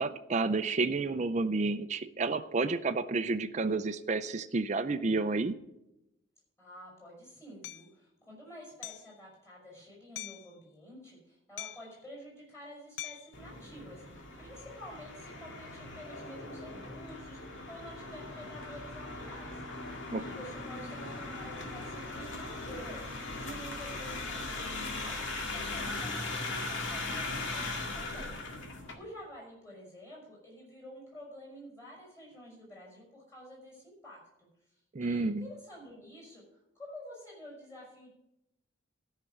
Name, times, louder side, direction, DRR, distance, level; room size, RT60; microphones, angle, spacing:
voice 1, 0.0-5.6 20.1-20.2 34.9-35.5, right 3 dB, 35° right, 9 dB, 0.5 m, -30 dB
voice 2, 6.6-25.2 25.5-28.4 28.9-34.5 35.0-38.1, equal, 15° left, -2 dB, 5.3 m, -49 dB
Hammer, 7.6-7.9 8.8-9.1 10.2-10.5 11.6-12.0 13.0-13.4, left 13 dB, 65° left, 0.5 m, -42 dB
sound 1, 13.3-28.9, left 2 dB, 80° left, 2.0 m, -39 dB
13.0 x 5.7 x 7.8 m, 0.87 s
head